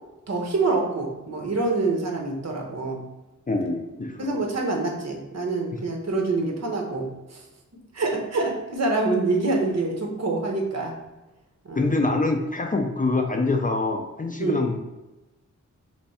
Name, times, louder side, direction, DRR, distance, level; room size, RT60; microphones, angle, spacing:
voice 1, 0.3-3.0 4.2-7.4 7.9-10.9 11.6-11.9 14.4-14.6, right 3 dB, 60° right, 1 dB, 0.9 m, -26 dB
voice 2, 3.5-4.3 11.8-14.8, left 3 dB, 25° left, 3 dB, 0.4 m, -25 dB
3.4 x 3.2 x 4.2 m, 1.0 s
wide cardioid pair, 140°, 30 cm